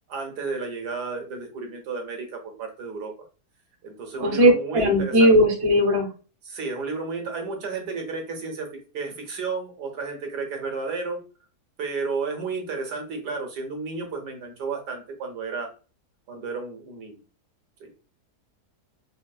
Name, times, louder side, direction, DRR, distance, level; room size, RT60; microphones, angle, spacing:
voice 1, 0.1-3.1 3.8-5.3 6.4-11.2 11.8-15.7 16.3-17.2 17.8-17.9, right 4 dB, 90° right, 3 dB, 1.5 m, -32 dB
voice 2, 4.2-6.1, equal, 30° right, -1 dB, 0.4 m, -18 dB
4.3 x 2.1 x 2.3 m, 0.35 s
omnidirectional pair, 1.7 m